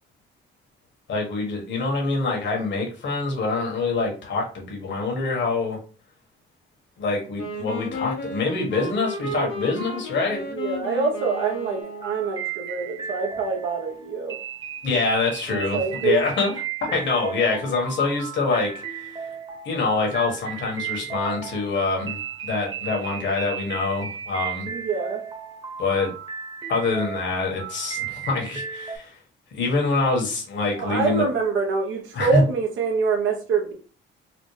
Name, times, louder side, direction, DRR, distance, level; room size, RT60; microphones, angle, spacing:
voice 1, 1.1-5.8 7.0-10.5 14.8-16.6 16.9-19.3 19.6-24.7 25.8-26.1 26.7-29.2 29.5-31.2 32.1-32.4, left 3 dB, 65° left, 1.6 m, -25 dB
Wind instrument woodwind instrument, 7.4-12.4, left 1 dB, 85° left, 1.3 m, -33 dB
voice 2, 10.5-14.4 15.5-16.2 24.7-25.2 30.7-33.7, right 5 dB, 85° right, 1.1 m, -25 dB
sound 1, 11.8-29.0, right 7 dB, 20° right, 1.0 m, -35 dB
4.1 x 2.1 x 3.3 m
cardioid pair, 90°, 20 cm